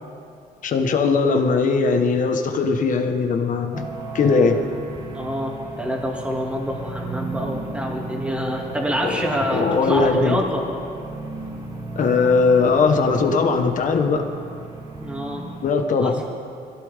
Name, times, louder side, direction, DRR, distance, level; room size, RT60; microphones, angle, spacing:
voice 1, 0.6-3.8 4.1-4.6 9.0-9.2 9.5-10.4 11.9-14.2 15.6-16.2, left 4 dB, 50° left, 5 dB, 1.6 m, -19 dB
sound 1, 3.7-15.7, right 3 dB, 30° right, 2.4 m, -35 dB
voice 2, 5.1-10.8 15.0-15.5 16.0-16.1, equal, 5° right, -1 dB, 2.8 m, -26 dB
22.5 x 16.0 x 3.8 m, 2.5 s
cardioid pair, 110°, 17 cm